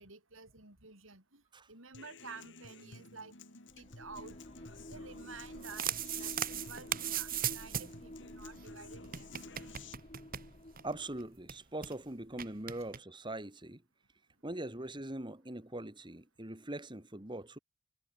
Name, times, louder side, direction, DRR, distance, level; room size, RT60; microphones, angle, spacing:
voice 1, 0.0-1.4 1.7-3.3 3.8-4.4 4.9-9.3, right 4 dB, 85° right, 6.7 m, -51 dB
Human voice / Acoustic guitar, 1.9-9.9, left 3 dB, 65° left, 7.5 m, -53 dB
sound 1, 3.7-11.5, left 1 dB, 35° left, 2.8 m, -51 dB
sound 2, 5.4-8.0 8.3-8.4 8.6-8.7 9.0-10.9 11.2-11.3 11.5-11.9 12.4-13.0, right 10 dB, 45° right, 2.0 m, -38 dB
voice 2, 10.8-13.8 14.4-17.6, right 1 dB, 25° right, 2.4 m, -42 dB
head